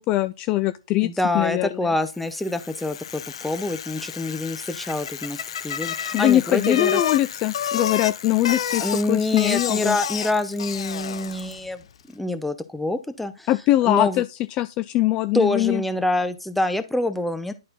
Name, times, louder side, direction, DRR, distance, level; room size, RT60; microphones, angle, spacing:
voice 1, 0.0-1.1 1.3-1.9 6.1-10.0 13.5-14.3 14.6-15.8, left 15 dB, 25° left, 0.4 m, -22 dB
voice 2, 1.0-7.0 8.8-11.8 12.1-13.5 13.8-14.2 15.3-17.5, left 2 dB, 5° left, 0.7 m, -26 dB
Bicycle, 2.2-11.7, left 8 dB, 65° left, 0.8 m, -31 dB
11.0 x 4.3 x 3.8 m
hypercardioid pair, 140°, 3 cm